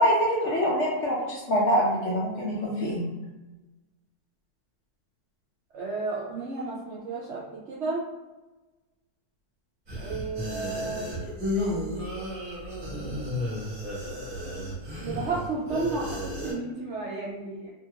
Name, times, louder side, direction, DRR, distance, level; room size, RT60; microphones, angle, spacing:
voice 1, 0.0-3.1, equal, 65° left, -5 dB, 0.7 m, -25 dB
voice 2, 5.7-8.0 10.0-11.3 11.6-12.0 15.0-17.7, right 3 dB, 75° right, -6 dB, 0.6 m, -33 dB
sound 1, 9.9-16.5, left 1 dB, 40° right, 1.0 m, -33 dB
2.7 x 2.4 x 2.8 m, 1.1 s
omnidirectional pair, 1.7 m